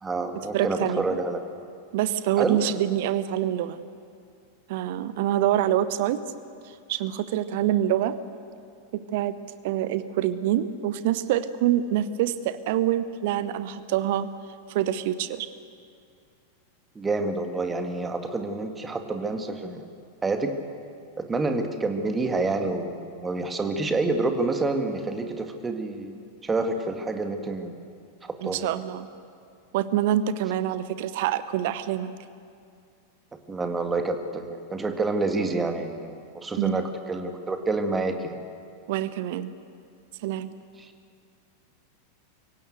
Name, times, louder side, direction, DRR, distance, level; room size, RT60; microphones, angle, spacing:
voice 1, 0.0-1.4 2.4-2.6 17.0-19.9 20.2-20.6 21.2-26.1 26.4-27.8 28.2-28.7 33.5-38.4 40.8-40.9, right 3 dB, 15° right, 6 dB, 1.9 m, -28 dB
voice 2, 0.5-1.2 1.9-3.8 4.7-6.2 6.6-8.2 8.9-9.4 9.6-14.3 14.7-15.5 28.4-29.1 29.7-32.1 36.6-36.8 38.9-39.5 40.2-40.5, right 12 dB, 50° right, 14 dB, 0.8 m, -26 dB
25.5 x 16.5 x 8.2 m, 2.4 s
figure-of-eight pair, 90°, 0 cm